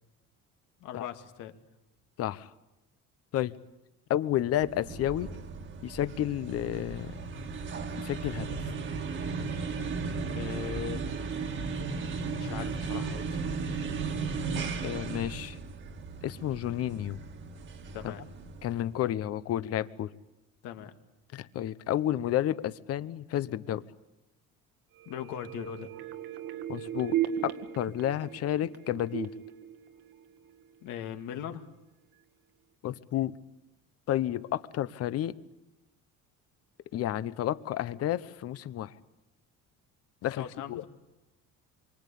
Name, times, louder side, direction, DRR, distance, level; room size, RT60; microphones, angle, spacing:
voice 1, 0.8-1.6 10.2-11.2 12.4-13.5 17.9-18.5 20.6-20.9 25.1-25.9 30.8-31.7 40.4-40.9, left 9 dB, 75° left, 6 dB, 2.3 m, -40 dB
voice 2, 2.2-2.5 3.3-3.6 4.1-5.3 5.8-7.2 8.0-8.7 14.8-15.6 16.2-17.2 18.0-18.1 18.6-20.1 21.3-23.8 26.7-27.1 27.4-29.3 32.8-33.3 34.1-35.4 36.9-38.9 40.2-40.8, left 12 dB, 50° left, 15 dB, 1.0 m, -31 dB
sound 1, 4.4-18.9, right 4 dB, 40° right, 1.7 m, -36 dB
sound 2, 24.9-30.6 31.0-31.1, right 11 dB, 85° right, 1.9 m, -36 dB
27.5 x 24.0 x 8.5 m, 0.98 s
cardioid pair, 160°, 31 cm